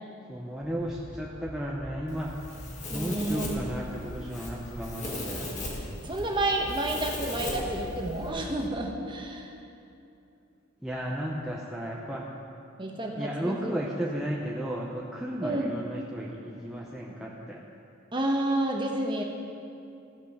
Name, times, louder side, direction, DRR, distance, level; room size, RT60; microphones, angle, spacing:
voice 1, 0.3-2.3 2.9-5.5 10.8-12.3 13.2-17.6, equal, 5° right, -4 dB, 0.6 m, -34 dB
sound 1, 0.6-8.8, right 1 dB, 85° right, 2.0 m, -45 dB
Domestic sounds home sounds, 2.1-8.3, left 1 dB, 35° left, 1.5 m, -38 dB
voice 2, 2.9-3.6 6.0-9.5 12.8-13.7 15.4-15.7 18.1-19.2, right 1 dB, 20° right, 1 dB, 1.0 m, -30 dB
15.0 x 5.4 x 6.4 m, 2.7 s
head